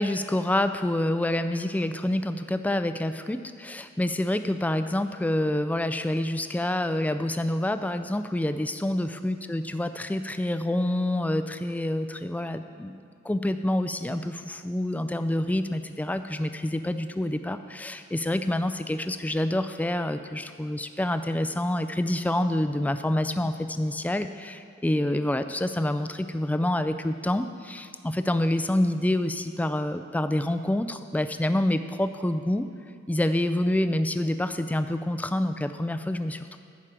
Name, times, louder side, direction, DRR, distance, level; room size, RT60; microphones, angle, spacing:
voice 1, 0.0-32.7 33.1-36.6, left 1 dB, 5° left, 10 dB, 0.3 m, -27 dB
11.0 x 4.8 x 7.4 m, 2.5 s
head